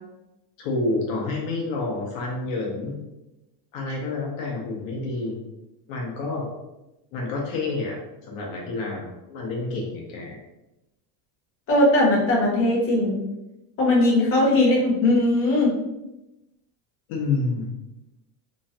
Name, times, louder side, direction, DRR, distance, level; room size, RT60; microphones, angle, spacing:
voice 1, 0.6-3.0 3.7-5.4 5.9-6.5 7.1-10.4 17.1-17.7, left 3 dB, 60° left, -2 dB, 0.8 m, -29 dB
voice 2, 11.7-13.2 13.8-15.7, left 1 dB, 25° left, -4 dB, 0.9 m, -19 dB
3.1 x 2.2 x 2.7 m, 0.94 s
supercardioid pair, 145°, 48 cm